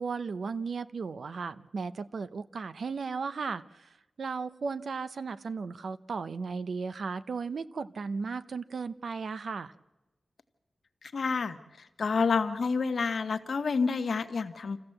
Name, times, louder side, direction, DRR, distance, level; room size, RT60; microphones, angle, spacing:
voice 1, 0.0-3.9 4.2-9.7, right 5 dB, 65° right, 13 dB, 0.7 m, -35 dB
voice 2, 11.1-11.6 12.0-14.8, left 5 dB, 60° left, 9 dB, 1.2 m, -28 dB
27.5 x 15.0 x 7.8 m, 1.0 s
wide cardioid pair, 145°, 0 cm